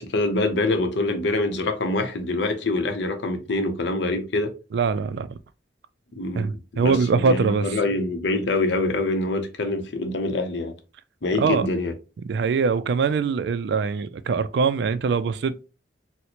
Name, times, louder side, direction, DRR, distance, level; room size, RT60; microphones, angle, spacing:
voice 1, 0.0-4.5 6.2-10.7 11.2-11.9, left 2 dB, 70° left, 0.6 m, -25 dB
voice 2, 4.7-5.3 6.3-7.8 11.4-11.7 12.2-15.7, right 5 dB, 60° right, 0.3 m, -23 dB
4.1 x 2.1 x 2.9 m
head